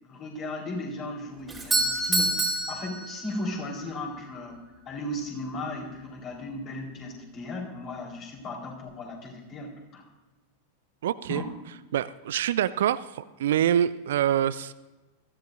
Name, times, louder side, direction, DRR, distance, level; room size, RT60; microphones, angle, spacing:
voice 1, 0.0-10.0 11.3-11.5, left 2 dB, 35° left, -1 dB, 4.2 m, -36 dB
Doorbell, 1.5-3.6, right 2 dB, 5° right, 2.8 m, -27 dB
voice 2, 11.0-11.4 11.9-14.7, right 10 dB, 60° right, 15 dB, 0.4 m, -25 dB
22.5 x 14.5 x 2.6 m, 1.1 s
figure-of-eight pair, 90°, 0 cm